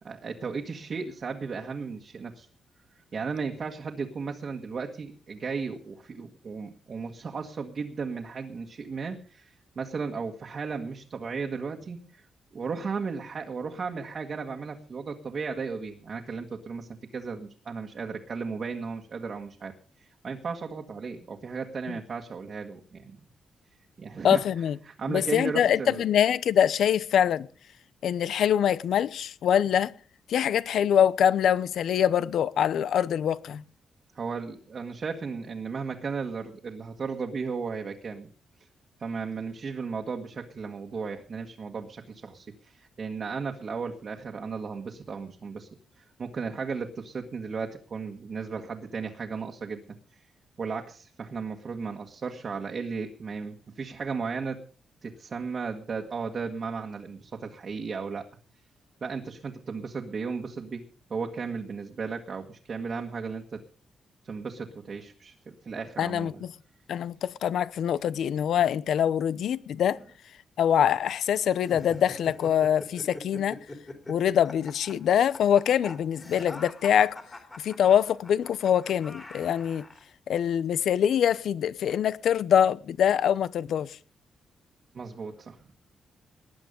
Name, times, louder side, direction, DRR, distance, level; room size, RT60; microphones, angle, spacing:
voice 1, 0.0-2.5 3.1-12.2 12.5-23.2 24.0-24.4 24.8-26.0 34.1-38.3 39.0-45.7 46.0-49.8 50.6-54.6 55.0-58.3 59.0-60.8 61.1-63.6 64.2-66.4 84.9-85.7, right 5 dB, 40° right, 1.6 m, -35 dB
voice 2, 24.2-24.8 25.1-27.5 28.0-29.9 30.3-33.6 66.0-66.5 66.9-70.0 70.6-73.6 74.1-77.2 77.6-79.8 80.3-84.0, left 9 dB, 75° left, 0.7 m, -24 dB
sound 1, 71.6-80.0, left 2 dB, 20° left, 3.1 m, -44 dB
19.5 x 10.5 x 5.3 m
wide cardioid pair, 155°, 0 cm